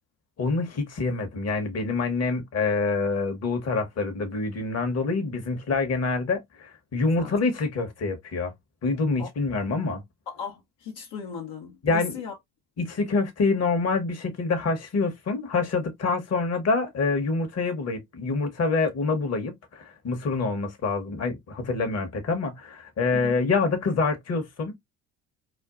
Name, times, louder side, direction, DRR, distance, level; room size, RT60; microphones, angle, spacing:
voice 1, 0.4-8.5 8.8-10.0 11.8-12.2 12.8-24.8, left 4 dB, 35° left, 1.1 m, -26 dB
voice 2, 10.3-12.4 23.1-23.4, left 6 dB, 60° left, 0.9 m, -37 dB
4.3 x 2.3 x 2.4 m
hypercardioid pair, 60°, 43 cm